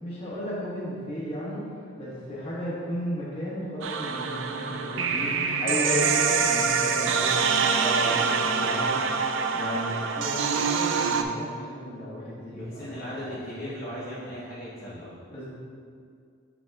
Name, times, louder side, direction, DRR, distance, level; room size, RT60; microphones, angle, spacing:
voice 1, 0.0-9.1 9.5-13.4 13.9-14.1 15.3-15.5, left 1 dB, 30° left, -8 dB, 1.4 m, -34 dB
sound 1, 3.8-11.2, right 5 dB, 75° right, 0.4 m, -25 dB
voice 2, 12.5-15.2, equal, 50° left, -9 dB, 1.0 m, -38 dB
7.2 x 5.9 x 2.4 m, 2.2 s
head